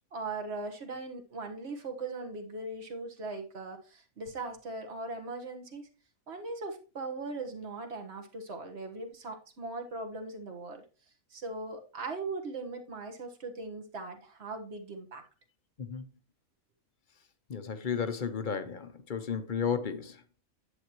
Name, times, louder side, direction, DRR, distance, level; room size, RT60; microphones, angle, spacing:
voice 1, 0.1-5.9 6.3-10.8 11.3-15.2, right 3 dB, 50° right, 1.6 m, -39 dB
voice 2, 15.8-16.1 17.5-20.4, left 6 dB, 40° left, 0.8 m, -33 dB
9.8 x 8.6 x 3.0 m
omnidirectional pair, 1.5 m